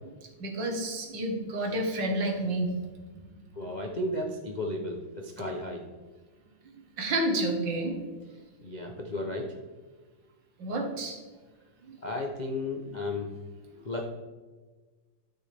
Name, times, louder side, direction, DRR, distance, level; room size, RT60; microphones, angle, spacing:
voice 1, 0.4-2.7 3.1-3.2 3.6-3.7 6.7-8.0 10.6-11.2 11.9-12.0, right 1 dB, 65° right, 3 dB, 2.0 m, -30 dB
voice 2, 3.5-5.9 8.6-9.6 12.0-13.3 13.8-14.1, left 1 dB, 75° left, 1 dB, 0.4 m, -34 dB
12.5 x 6.0 x 3.4 m, 1.3 s
omnidirectional pair, 2.2 m